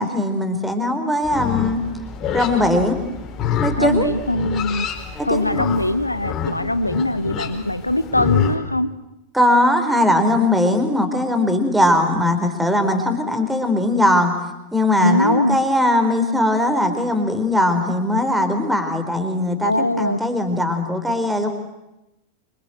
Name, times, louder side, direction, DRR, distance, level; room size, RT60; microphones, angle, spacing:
voice 1, 0.0-1.8 2.3-3.0 3.6-4.1 5.1-5.6 9.3-14.3 14.7-21.5, left 1 dB, 5° right, 7 dB, 4.4 m, -19 dB
Livestock farm animals working animals, 1.2-8.5, left 7 dB, 30° left, 4.5 m, -27 dB
voice 2, 3.8-4.9 5.2-8.9 15.0-15.6 19.6-20.2, left 1 dB, 85° left, 16 dB, 1.2 m, -21 dB
27.0 x 26.0 x 8.0 m, 0.94 s
figure-of-eight pair, 90°, 0 cm